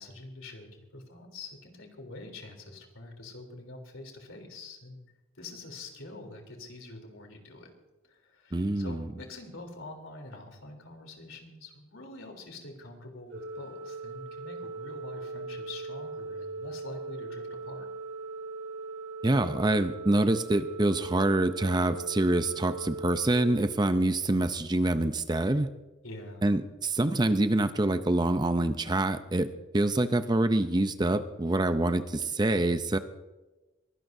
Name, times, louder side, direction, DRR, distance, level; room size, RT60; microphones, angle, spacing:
voice 1, 0.0-5.0 5.3-7.7 8.0-17.9 26.0-26.4, left 2 dB, 80° left, 3 dB, 3.4 m, -45 dB
voice 2, 8.5-9.0 19.2-25.7 26.4-29.5 29.7-33.0, right 2 dB, 20° right, 10 dB, 0.5 m, -26 dB
Organ, 13.3-24.4, right 3 dB, 60° right, 2.8 m, -40 dB
23.0 x 17.0 x 2.7 m, 1.1 s
head